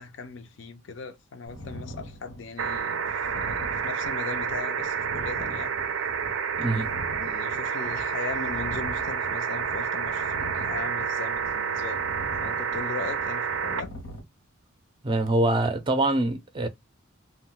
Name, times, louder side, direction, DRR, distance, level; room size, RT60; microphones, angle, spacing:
voice 1, 0.0-3.0 3.4-5.7 6.6-6.8 7.1-12.0 12.4-13.9, left 4 dB, 65° left, 0.4 m, -38 dB
sound 1, 1.5-14.2, equal, 90° left, 0.9 m, -43 dB
sound 2, 2.6-13.8 15.3-15.4, right 7 dB, 85° right, 0.4 m, -29 dB
voice 2, 15.0-16.7, right 2 dB, 25° right, 0.4 m, -24 dB
2.2 x 2.1 x 3.7 m
head